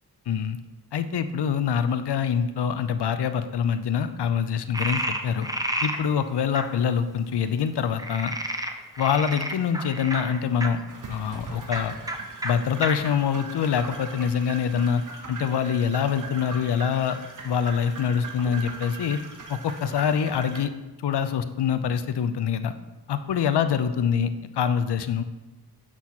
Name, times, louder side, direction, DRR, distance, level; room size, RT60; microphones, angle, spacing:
voice 1, 0.3-0.6 0.9-5.5 5.8-8.3 9.0-10.8 11.1-11.9 12.4-15.0 15.3-17.2 17.4-19.2 19.5-20.7 21.0-22.7 23.1-25.2, left 7 dB, 85° left, 11 dB, 0.5 m, -25 dB
Frog, 4.7-6.0 6.5-6.7 8.0-10.7 11.6-11.8 12.1-12.2 12.4-12.5 12.8-12.9 13.5-14.3, right 1 dB, 10° right, 0.5 m, -30 dB
sound 1, 10.9-20.6, right 3 dB, 50° right, 0.8 m, -40 dB
7.8 x 2.9 x 5.7 m, 1.1 s
wide cardioid pair, 100°, 39 cm